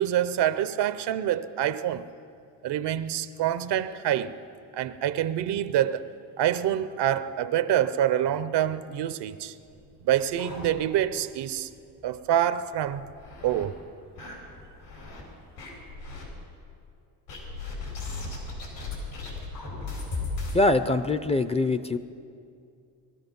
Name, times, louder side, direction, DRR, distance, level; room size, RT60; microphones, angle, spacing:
voice 1, 0.0-2.1 2.6-4.3 4.7-6.1 6.4-9.5 10.0-11.7 12.0-13.1 13.4-13.8, right 11 dB, 70° right, 0.8 m, -26 dB
sound 1, 9.7-11.2 11.6-11.7 12.0-12.1 12.7-13.7 14.2-15.2 15.6-16.2 17.3-20.6, left 3 dB, 85° left, 4.7 m, -37 dB
voice 2, 20.5-22.0, left 2 dB, 15° left, 0.5 m, -23 dB
20.0 x 12.5 x 5.4 m
cardioid pair, 105°, 42 cm